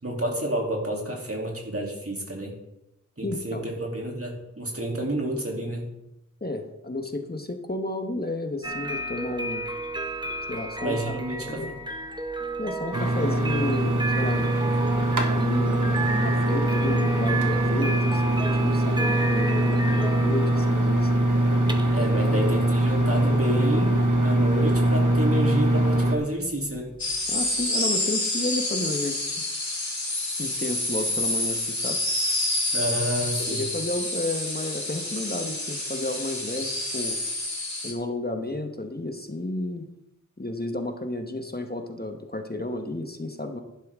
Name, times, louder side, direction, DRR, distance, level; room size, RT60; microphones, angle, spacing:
voice 1, 0.0-2.5 3.2-5.9 10.8-11.8 21.9-26.9 32.7-33.6, right 1 dB, 50° right, -1 dB, 3.0 m, -29 dB
voice 2, 3.2-3.7 6.4-9.7 10.5-11.7 12.6-14.5 15.3-21.1 22.2-22.5 27.3-29.4 30.4-32.0 33.4-37.2 37.8-39.9 40.4-43.6, left 2 dB, 30° left, 5 dB, 1.2 m, -32 dB
sound 1, 8.6-27.6, right 3 dB, 15° right, 1.1 m, -33 dB
sound 2, 12.9-26.2, right 1 dB, 85° right, 1.5 m, -22 dB
sound 3, 27.0-37.9, left 2 dB, 65° left, 3.9 m, -28 dB
11.5 x 11.5 x 3.7 m, 0.92 s
wide cardioid pair, 40°, 30 cm